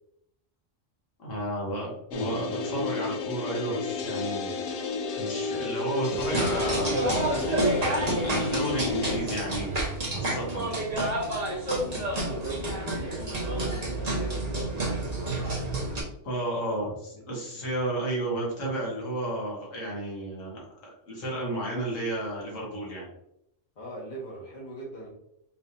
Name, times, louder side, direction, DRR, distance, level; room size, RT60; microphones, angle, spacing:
voice 1, 1.2-4.5 5.2-7.0 7.3-9.8 10.1-10.8 16.2-23.1, right 1 dB, 80° left, -3 dB, 1.7 m, -32 dB
sound 1, 2.1-9.2, left 4 dB, 55° left, 0.7 m, -32 dB
sound 2, 6.2-16.0, right 1 dB, 35° right, 1.2 m, -29 dB
voice 2, 11.7-14.7 17.1-17.2 23.7-25.1, equal, 35° left, -4 dB, 1.5 m, -40 dB
5.5 x 3.3 x 2.7 m, 0.77 s
omnidirectional pair, 1.3 m